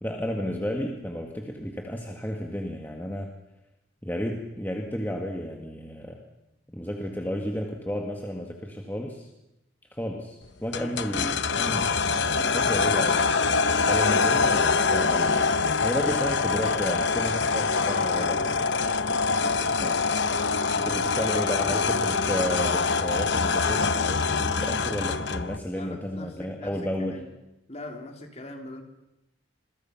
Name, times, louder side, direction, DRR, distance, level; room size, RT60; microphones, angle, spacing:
voice 1, 0.0-3.3 4.0-6.2 6.7-9.3 9.9-12.3 12.5-13.2 13.9-15.5 15.8-18.4 19.8-20.0 20.7-27.2, equal, 10° left, 1 dB, 1.8 m, -32 dB
sound 1, 10.7-25.6, left 4 dB, 55° left, 0.9 m, -24 dB
voice 2, 12.3-13.0 17.7-18.6 19.1-20.1 20.9-21.8 25.7-27.3 27.7-28.8, left 1 dB, 30° left, 3 dB, 3.2 m, -41 dB
26.5 x 22.0 x 5.8 m, 0.92 s
head